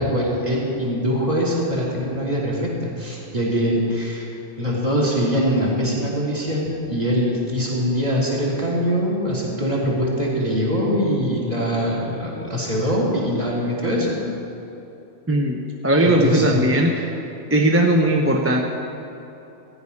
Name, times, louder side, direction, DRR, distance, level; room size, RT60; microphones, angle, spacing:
voice 1, 0.0-4.3 4.6-14.1 16.0-16.6, equal, 30° right, -4 dB, 3.1 m, -23 dB
voice 2, 15.3-17.1 17.5-18.6, right 1 dB, 15° right, 0 dB, 0.6 m, -18 dB
15.0 x 5.5 x 9.8 m, 3.0 s
omnidirectional pair, 1.3 m